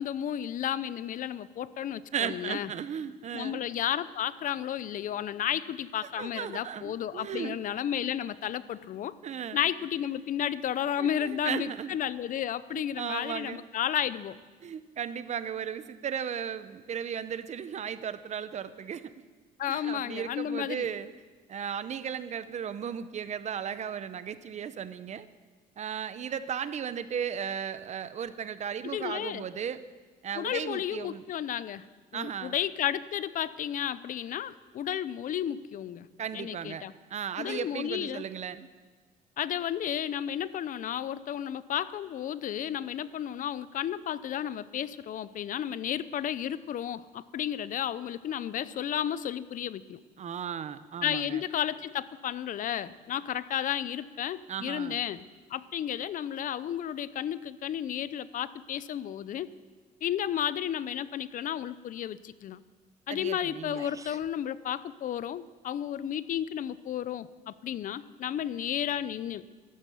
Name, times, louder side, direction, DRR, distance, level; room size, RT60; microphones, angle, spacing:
voice 1, 0.0-2.7 3.3-9.2 9.5-14.4 19.6-20.9 28.8-29.4 30.3-31.9 32.1-36.1 36.3-36.9 37.4-38.2 39.4-50.0 51.0-55.2 55.5-59.5 60.0-62.6 63.1-69.4, left 10 dB, 50° left, 16 dB, 0.7 m, -32 dB
voice 2, 2.1-3.6 6.2-7.6 9.2-9.6 11.0-12.1 12.7-13.7 14.6-19.1 19.7-21.1 21.5-25.3 25.8-29.8 30.2-31.2 32.1-32.6 36.2-38.7 50.2-51.4 54.5-55.0 63.1-63.8, right 8 dB, 45° right, 13 dB, 0.8 m, -36 dB
sound 1, 63.4-63.5 63.7-64.3, right 4 dB, 20° right, 0.5 m, -48 dB
14.0 x 12.0 x 7.1 m, 1.4 s
cardioid pair, 110°, 17 cm